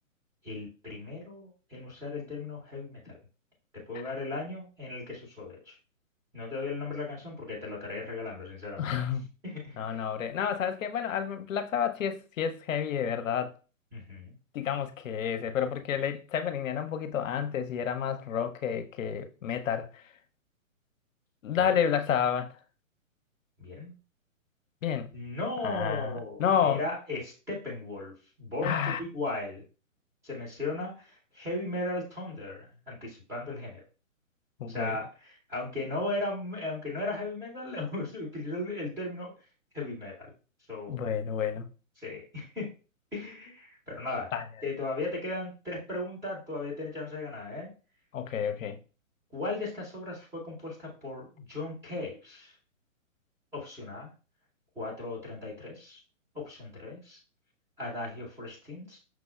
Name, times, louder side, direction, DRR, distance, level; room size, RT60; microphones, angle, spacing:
voice 1, 0.4-3.1 3.7-5.7 6.3-8.9 9.4-10.0 13.9-14.3 21.5-21.8 23.6-23.9 25.1-28.1 28.4-29.6 30.2-33.8 34.7-39.3 39.7-40.3 40.7-41.0 42.0-42.7 43.1-44.3 44.6-47.7 49.3-52.5 53.5-54.1 54.8-56.0 56.3-57.2 57.8-59.0, left 2 dB, 5° right, 0.7 m, -36 dB
voice 2, 8.8-9.3 9.8-13.5 14.5-20.0 21.4-22.5 24.8-25.1 25.6-26.8 28.6-29.0 34.6-35.0 40.9-41.7 44.3-44.4 48.1-48.8, left 8 dB, 75° left, 0.6 m, -30 dB
5.9 x 2.0 x 2.2 m
hypercardioid pair, 140°, 40 cm